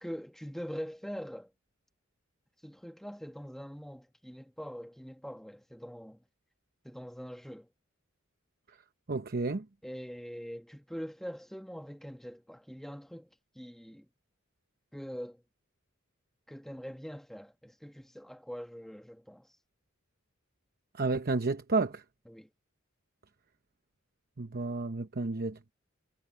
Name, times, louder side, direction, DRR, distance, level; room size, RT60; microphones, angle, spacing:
voice 1, 0.0-1.5 2.6-6.2 6.8-7.7 9.8-13.3 13.5-14.1 14.9-15.4 16.5-19.5 22.3-22.5, equal, ahead, 1.4 m, -43 dB
voice 2, 9.1-9.6 20.9-22.0 24.4-25.7, right 3 dB, 50° right, 0.9 m, -31 dB
head